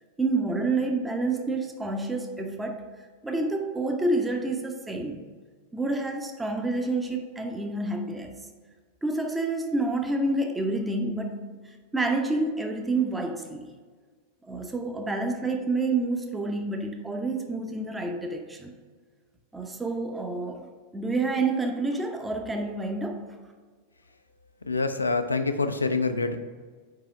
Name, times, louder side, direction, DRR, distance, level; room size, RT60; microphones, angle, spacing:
voice 1, 0.2-2.8 3.2-5.3 5.7-8.4 9.0-13.7 14.5-18.7 19.5-20.7 20.9-23.3, right 2 dB, 10° right, 4 dB, 0.6 m, -28 dB
voice 2, 24.7-26.4, left 3 dB, 80° left, 8 dB, 0.5 m, -26 dB
4.9 x 4.7 x 5.0 m, 1.5 s
figure-of-eight pair, 90°, 0 cm